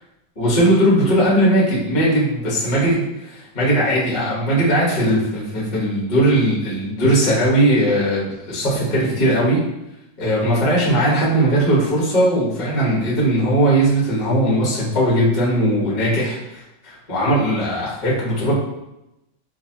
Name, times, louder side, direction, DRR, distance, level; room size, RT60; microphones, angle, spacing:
voice 1, 0.4-9.6 10.2-18.5, right 1 dB, 30° left, -7 dB, 1.0 m, -19 dB
4.0 x 2.6 x 2.8 m, 0.91 s
omnidirectional pair, 2.3 m